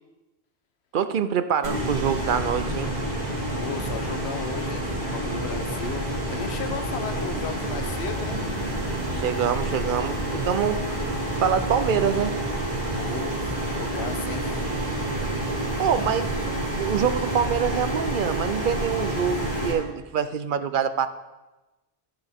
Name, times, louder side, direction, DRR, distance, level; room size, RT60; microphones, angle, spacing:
voice 1, 0.9-2.9 9.1-11.0 11.4-12.3 15.8-16.4 16.8-21.1, right 7 dB, 55° right, 11 dB, 0.7 m, -25 dB
sound 1, 1.6-19.7, right 1 dB, 40° right, 2.7 m, -28 dB
voice 2, 3.5-8.4 13.0-14.5, left 6 dB, 80° left, 8 dB, 1.0 m, -35 dB
12.0 x 10.5 x 3.6 m, 1.1 s
omnidirectional pair, 1.1 m